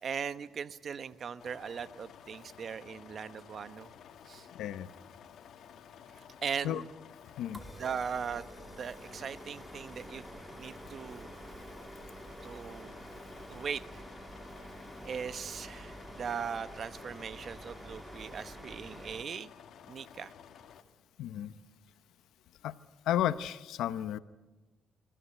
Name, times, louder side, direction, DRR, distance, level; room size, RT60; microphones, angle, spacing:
voice 1, 0.0-3.9 4.3-4.5 6.1-6.9 7.8-8.5 8.8-10.2 10.5-11.3 12.4-12.9 13.5-14.0 15.0-19.5 19.9-20.3, right 7 dB, 50° right, 13 dB, 1.0 m, -39 dB
sound 1, 1.4-20.8, left 8 dB, 70° left, 1.7 m, -53 dB
sound 2, 7.5-19.2, right 1 dB, 10° right, 1.6 m, -48 dB
voice 2, 21.2-21.5 22.6-22.8 23.1-24.2, left 11 dB, 85° left, 14 dB, 0.8 m, -32 dB
26.0 x 14.0 x 10.0 m, 1.2 s
cardioid pair, 90°, 0 cm